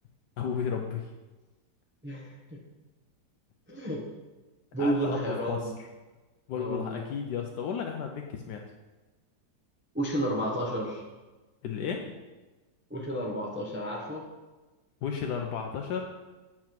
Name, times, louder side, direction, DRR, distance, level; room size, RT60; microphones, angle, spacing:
voice 1, 0.4-1.1 4.8-5.6 6.5-8.6 11.6-12.1 15.0-16.0, left 7 dB, 75° left, 2 dB, 1.2 m, -33 dB
voice 2, 2.0-2.6 3.7-4.0 4.7-5.7 6.6-7.0 9.9-11.0 12.9-14.2, right 1 dB, 10° right, -1 dB, 0.7 m, -31 dB
7.5 x 5.9 x 4.5 m, 1.2 s
omnidirectional pair, 1.8 m